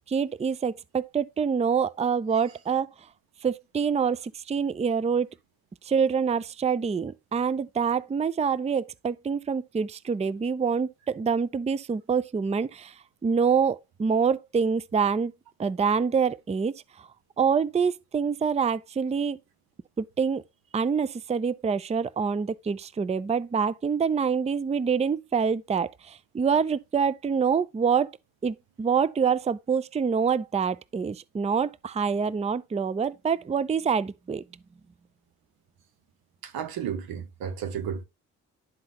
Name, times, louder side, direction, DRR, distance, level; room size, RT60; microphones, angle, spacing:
voice 1, 0.1-2.9 3.4-5.3 5.8-12.9 13.2-15.3 15.6-17.1 17.4-19.4 20.0-20.4 20.7-28.1 28.4-34.4, right 6 dB, 20° right, 0.4 m, -26 dB
voice 2, 36.4-38.0, right 8 dB, 90° right, 1.1 m, -33 dB
11.5 x 3.9 x 2.9 m
supercardioid pair, 60°, 35 cm